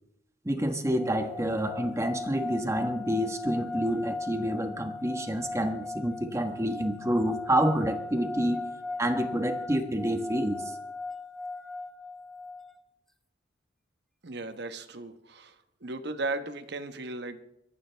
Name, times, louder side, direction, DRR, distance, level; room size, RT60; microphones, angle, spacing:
voice 1, 0.4-8.6 9.0-10.7, equal, 15° right, 6 dB, 1.3 m, -28 dB
sound 1, 0.9-12.7, left 3 dB, ahead, 0.6 m, -38 dB
voice 2, 14.2-15.5 15.8-17.4, right 2 dB, 60° right, 9 dB, 1.1 m, -36 dB
26.0 x 14.0 x 3.4 m, 0.87 s
head